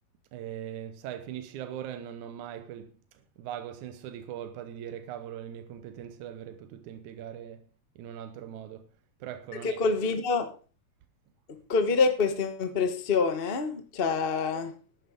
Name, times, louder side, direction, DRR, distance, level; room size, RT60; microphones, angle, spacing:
voice 1, 0.3-2.9 3.4-7.7 8.0-8.9 9.2-9.8 14.5-14.7, right 10 dB, 75° right, 2.3 m, -40 dB
voice 2, 9.6-10.5 11.7-14.7, left 4 dB, 45° left, 0.7 m, -26 dB
12.0 x 9.3 x 5.2 m
omnidirectional pair, 3.6 m